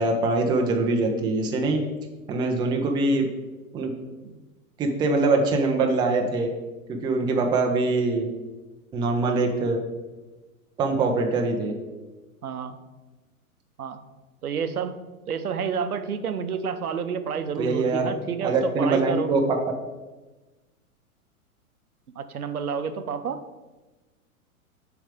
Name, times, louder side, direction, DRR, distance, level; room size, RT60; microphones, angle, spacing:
voice 1, 0.0-1.8 2.3-3.3 3.7-3.9 4.8-6.5 6.9-8.3 8.9-9.8 10.8-11.7 17.6-18.1 18.4-19.6, right 3 dB, 10° right, 2 dB, 0.4 m, -23 dB
voice 2, 12.4-12.8 13.8-14.0 14.4-15.0 15.3-19.4 22.2-23.4, right 6 dB, 85° right, 10 dB, 0.7 m, -29 dB
7.2 x 3.4 x 4.8 m, 1.2 s
figure-of-eight pair, 105°, 43 cm